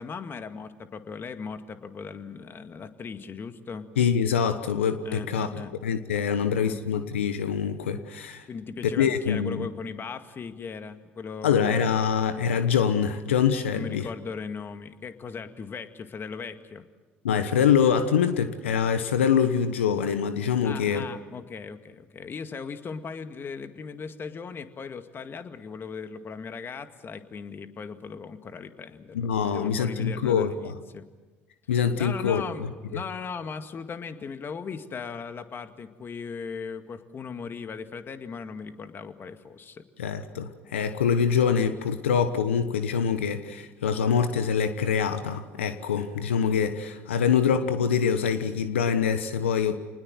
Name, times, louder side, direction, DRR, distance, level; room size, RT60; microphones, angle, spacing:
voice 1, 0.0-3.9 5.0-5.7 6.3-6.8 8.5-11.9 13.7-16.9 20.6-31.0 32.0-39.8, left 5 dB, 35° left, 9 dB, 2.0 m, -38 dB
voice 2, 4.0-8.5 9.0-9.7 11.4-14.1 17.2-21.1 29.1-30.7 31.7-32.4 40.0-49.8, left 7 dB, 85° left, 10 dB, 1.1 m, -25 dB
27.5 x 20.0 x 7.7 m, 1.3 s
hypercardioid pair, 65°, 6 cm